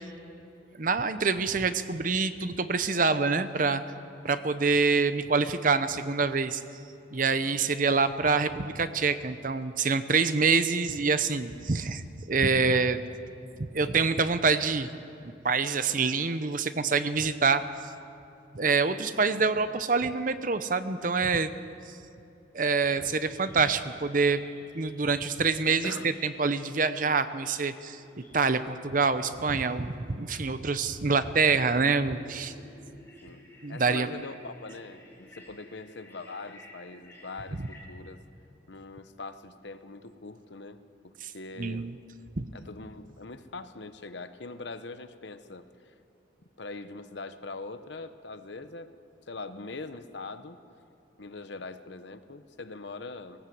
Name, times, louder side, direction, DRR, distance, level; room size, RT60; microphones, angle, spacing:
voice 1, 0.8-3.8 4.2-6.6 7.1-12.0 12.3-13.0 13.6-14.9 15.4-17.6 18.5-21.5 22.5-24.4 24.7-25.9 26.2-28.0 28.3-32.5 33.6-34.1 41.2-41.3 41.6-41.9 42.4-42.5, right 4 dB, 45° right, 11 dB, 0.8 m, -26 dB
voice 2, 15.9-16.2 22.9-23.1 25.8-26.1 33.2-33.4 33.7-38.2 38.7-41.9 42.5-45.6 46.6-48.9 49.3-50.6 51.2-53.5, left 3 dB, 70° left, 11 dB, 1.0 m, -42 dB
sound 1, 23.2-37.8, left 1 dB, 10° left, 3.5 m, -55 dB
18.5 x 18.0 x 7.9 m, 2.7 s
head